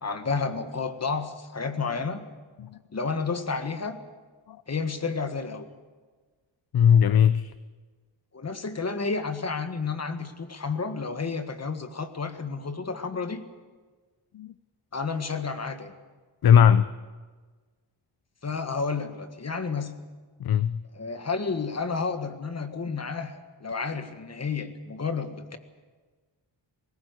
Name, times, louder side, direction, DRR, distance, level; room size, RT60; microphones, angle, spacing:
voice 1, 0.0-2.3 2.9-4.0 4.7-5.7 8.3-13.4 14.9-15.9 18.4-20.0 20.9-25.6, left 4 dB, 35° left, 1.6 m, -31 dB
voice 2, 6.7-7.5 14.3-14.5 16.4-16.9 20.4-20.8, left 8 dB, 55° left, 0.6 m, -19 dB
21.0 x 18.0 x 8.1 m
wide cardioid pair, 120°, 46 cm